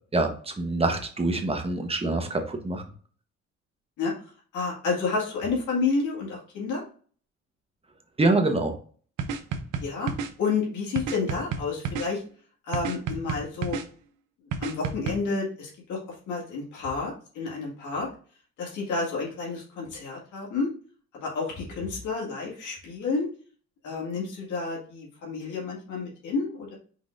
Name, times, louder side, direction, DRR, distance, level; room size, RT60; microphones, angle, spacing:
voice 1, 0.1-2.8 8.2-8.8, right 2 dB, 20° right, 4 dB, 1.1 m, -25 dB
voice 2, 4.5-6.8 9.8-10.1 10.4-12.2 12.6-13.8 14.6-16.0 16.3-18.1 18.6-20.7 21.1-23.3 23.8-26.7, left 4 dB, 80° left, -3 dB, 2.0 m, -30 dB
sound 1, 9.2-10.3 11.0-12.1 12.7-13.8 14.5-15.1, right 6 dB, 85° right, 0.7 m, -30 dB
5.4 x 3.8 x 2.5 m, 0.43 s
cardioid pair, 90°, 30 cm